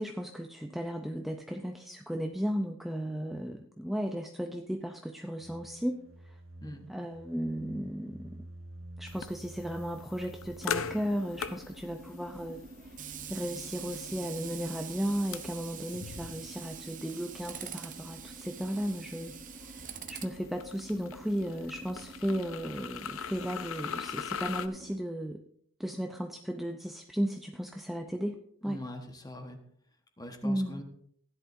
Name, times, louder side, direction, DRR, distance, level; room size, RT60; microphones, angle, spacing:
voice 1, 0.0-5.9 6.9-8.4 9.0-13.0 13.3-25.4 25.8-28.8 30.4-30.8, equal, ahead, 3 dB, 0.5 m, -35 dB
sound 1, 5.4-11.4, right 1 dB, 65° right, 1.2 m, -50 dB
sound 2, 9.1-24.7, left 7 dB, 70° left, 0.6 m, -42 dB
Tools, 10.6-25.0, right 6 dB, 40° right, 0.8 m, -46 dB
voice 2, 28.6-29.6 30.2-30.8, left 1 dB, 20° left, 5 dB, 1.2 m, -42 dB
16.0 x 10.5 x 2.6 m, 0.65 s
head